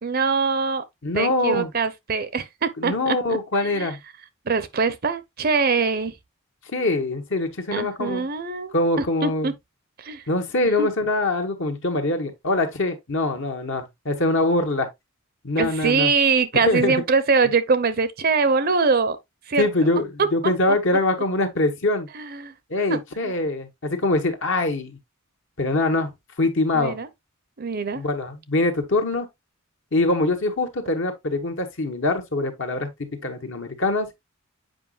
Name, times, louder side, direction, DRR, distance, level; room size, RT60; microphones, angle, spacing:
voice 1, 0.0-0.8 1.1-3.4 3.7-3.9 4.5-6.1 7.7-8.7 9.2-9.5 10.0-10.2 10.8-10.9 15.6-19.2 19.5-19.7 22.1-22.5 22.9-23.3 26.7-27.1 27.6-28.0, right 4 dB, 45° right, 0.6 m, -23 dB
voice 2, 1.0-1.7 2.8-4.0 6.7-8.3 8.7-9.5 10.3-14.9 15.4-16.1 16.6-16.9 19.6-22.1 22.7-25.0 25.6-26.1 26.4-27.0 27.9-29.3 29.9-34.1, left 2 dB, 60° left, 1.3 m, -23 dB
7.8 x 5.0 x 2.4 m
head